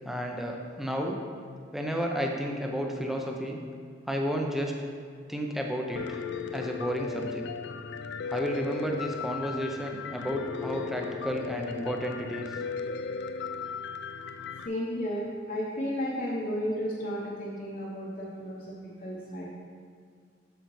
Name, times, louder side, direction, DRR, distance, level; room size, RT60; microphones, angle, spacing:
voice 1, 0.0-1.2 1.7-3.6 4.1-4.7 5.3-6.2 6.5-7.4 8.3-12.5, equal, ahead, 1 dB, 0.6 m, -32 dB
Piano, 6.0-14.7, left 5 dB, 65° left, 0.3 m, -36 dB
voice 2, 14.6-18.7 19.0-19.4, equal, 45° left, -5 dB, 0.9 m, -33 dB
7.9 x 6.6 x 3.1 m, 2.1 s
head